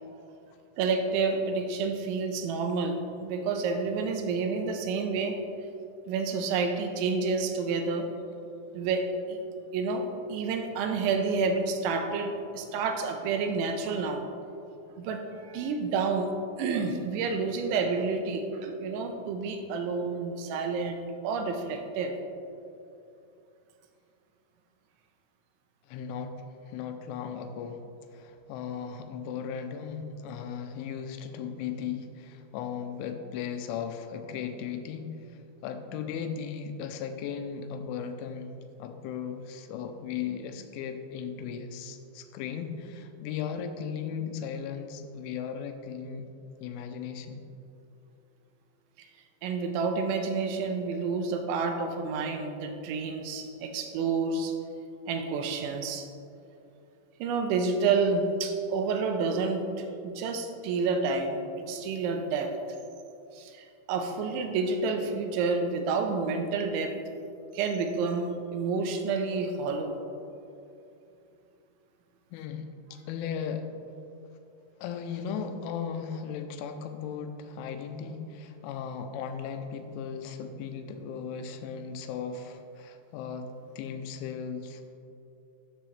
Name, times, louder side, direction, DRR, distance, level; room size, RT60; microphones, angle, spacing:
voice 1, 0.8-5.4 6.1-8.1 8.7-9.4 9.7-14.2 15.0-16.3 16.6-22.2 49.0-49.1 49.4-54.5 55.1-56.1 57.2-61.4 61.7-62.5 63.3-67.0 67.5-70.0, right 4 dB, 85° right, 5 dB, 3.0 m, -29 dB
voice 2, 25.9-26.4 26.7-27.8 28.1-35.1 35.6-38.5 38.8-46.3 46.6-47.4 72.3-73.7 74.8-83.5 83.8-84.9, left 7 dB, 85° left, 7 dB, 3.1 m, -36 dB
12.5 x 7.7 x 3.3 m, 2.6 s
omnidirectional pair, 5.4 m